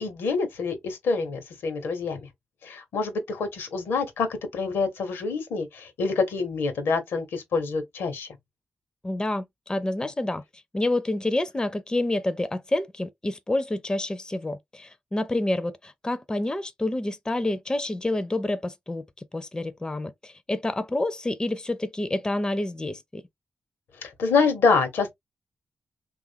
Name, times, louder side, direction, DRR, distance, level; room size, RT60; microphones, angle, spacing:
voice 1, 0.0-2.3 2.6-4.3 4.5-8.3 24.0-25.1, left 4 dB, 85° left, 0.9 m, -26 dB
voice 2, 9.0-10.4 10.7-19.0 19.3-23.2, left 1 dB, 20° left, 0.5 m, -28 dB
3.2 x 2.4 x 2.7 m
supercardioid pair, 45°, 4 cm